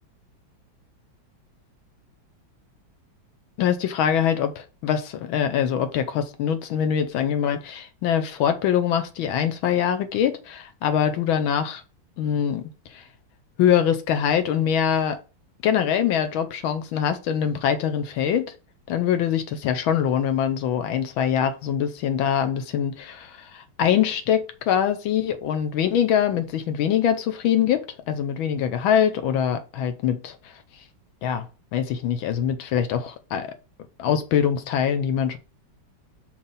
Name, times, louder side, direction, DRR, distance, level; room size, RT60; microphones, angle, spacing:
voice 1, 3.6-11.8 12.2-12.6 12.9-13.0 13.6-15.2 15.6-18.5 18.9-30.4 31.2-31.5 31.7-33.5 34.0-35.4, left 9 dB, 90° left, 1.6 m, -23 dB
5.3 x 3.4 x 5.3 m
omnidirectional pair, 2.2 m